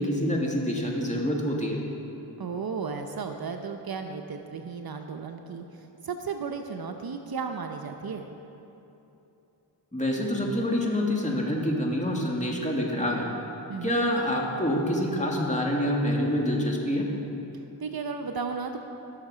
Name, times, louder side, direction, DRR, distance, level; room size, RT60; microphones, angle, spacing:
voice 1, 0.0-1.8 9.9-13.3 13.8-17.1, equal, 15° left, -2 dB, 2.6 m, -26 dB
voice 2, 2.4-8.3 13.7-14.0 17.8-18.8, right 5 dB, 50° right, 5 dB, 0.9 m, -34 dB
17.5 x 6.5 x 5.0 m, 3.0 s
supercardioid pair, 40°, 46 cm